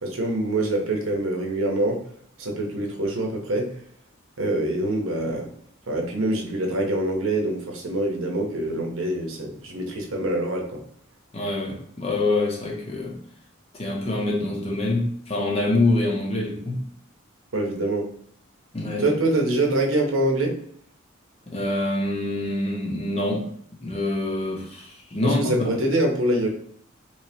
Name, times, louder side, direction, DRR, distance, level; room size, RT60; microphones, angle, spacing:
voice 1, 0.0-2.0 2.4-3.7 4.4-5.5 5.9-10.8 17.5-18.1 19.0-20.6 25.2-26.5, right 1 dB, 80° right, 0.8 m, -25 dB
voice 2, 11.3-13.2 13.7-16.9 18.7-19.0 21.5-23.5 23.8-25.6, left 2 dB, 30° left, 0.8 m, -25 dB
3.4 x 3.1 x 2.7 m
head